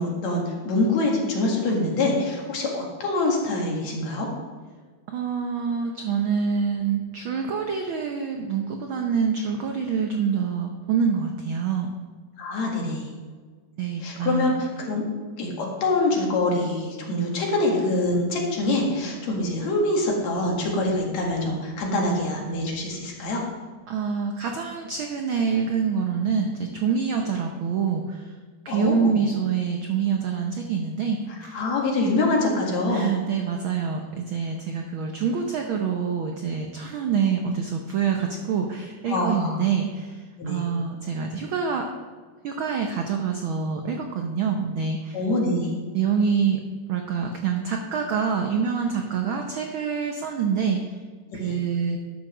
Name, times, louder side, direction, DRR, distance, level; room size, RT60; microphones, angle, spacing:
voice 1, 0.0-4.3 12.4-13.1 14.0-15.0 15.4-23.4 28.7-29.2 31.5-33.1 39.0-39.6 40.4-40.6 45.1-45.8 51.4-51.5, left 2 dB, 65° left, -1 dB, 3.1 m, -25 dB
voice 2, 5.1-11.9 13.8-14.6 23.9-28.2 28.6-31.6 32.9-40.2 40.5-41.9 42.4-45.2 45.9-46.6 46.9-50.8 51.3-52.0, right 6 dB, 75° right, 3 dB, 1.1 m, -26 dB
11.5 x 6.8 x 6.1 m, 1.5 s
omnidirectional pair, 3.3 m